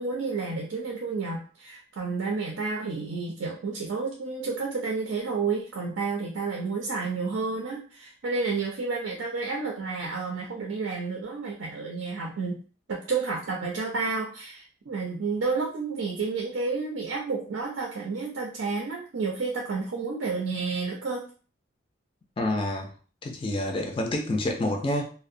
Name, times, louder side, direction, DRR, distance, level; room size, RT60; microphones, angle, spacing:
voice 1, 0.0-12.6 12.9-21.2, right 4 dB, 80° right, -1 dB, 0.5 m, -30 dB
voice 2, 22.4-22.9 23.2-25.1, left 1 dB, 25° left, 2 dB, 0.3 m, -28 dB
2.7 x 2.0 x 2.5 m, 0.40 s
head